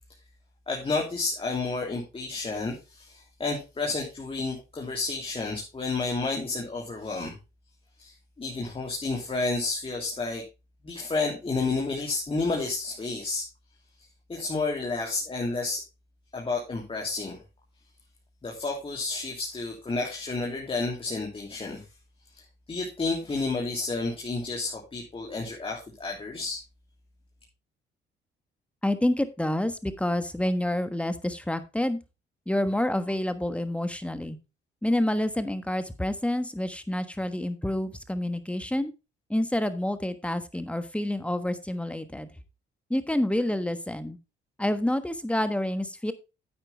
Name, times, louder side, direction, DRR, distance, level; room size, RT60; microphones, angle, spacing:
voice 1, 0.7-7.3 8.0-10.4 10.8-13.5 14.3-15.8 16.3-17.4 18.4-21.8 22.4-26.6, left 3 dB, 30° left, -2 dB, 2.8 m, -31 dB
voice 2, 28.8-32.0 32.5-34.4 34.8-38.9 39.3-42.3 42.9-44.2 44.6-46.1, left 1 dB, 5° left, 11 dB, 1.3 m, -28 dB
9.5 x 8.7 x 3.4 m, 0.28 s
cardioid pair, 90°, 20 cm